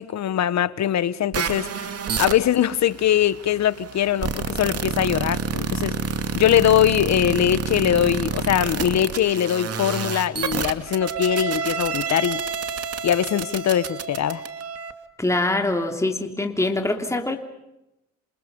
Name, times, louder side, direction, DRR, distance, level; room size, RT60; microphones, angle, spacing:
voice 1, 0.0-1.9 2.2-6.0 6.3-12.4 13.0-14.4, left 10 dB, 65° left, 1.4 m, -22 dB
sound 1, 1.3-14.9, right 6 dB, 55° right, 2.5 m, -29 dB
voice 2, 15.2-17.4, left 2 dB, 10° left, 3.1 m, -24 dB
28.0 x 28.0 x 5.5 m
cardioid pair, 90°, 30 cm